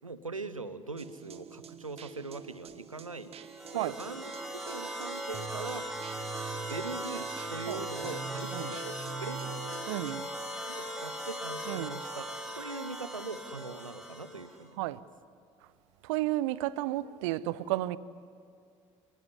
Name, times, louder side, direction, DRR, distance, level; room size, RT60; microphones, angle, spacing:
voice 1, 0.0-3.3 3.7-5.9 6.7-9.9 10.7-12.3 12.5-14.8, right 3 dB, 85° right, 1.0 m, -41 dB
sound 1, 1.0-10.1, right 9 dB, 40° right, 1.4 m, -45 dB
sound 2, 3.4-14.6, equal, ahead, 4.8 m, -39 dB
voice 2, 9.9-10.3 11.7-11.9 14.8-15.0 16.0-18.0, right 16 dB, 65° right, 0.8 m, -32 dB
28.0 x 19.5 x 9.8 m
figure-of-eight pair, 55°, 17 cm